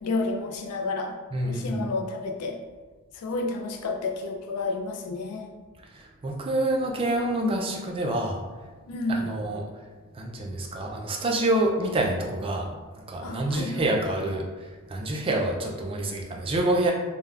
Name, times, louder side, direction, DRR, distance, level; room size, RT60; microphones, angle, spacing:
voice 1, 0.0-1.2 1.4-2.6 3.1-5.5 8.9-9.3 13.2-13.9, left 3 dB, 85° left, 2 dB, 0.4 m, -30 dB
voice 2, 1.3-1.9 5.9-8.4 9.1-9.6 10.1-12.7 13.0-16.9, right 1 dB, 25° right, 1 dB, 0.3 m, -27 dB
3.4 x 2.1 x 2.3 m, 1.3 s
head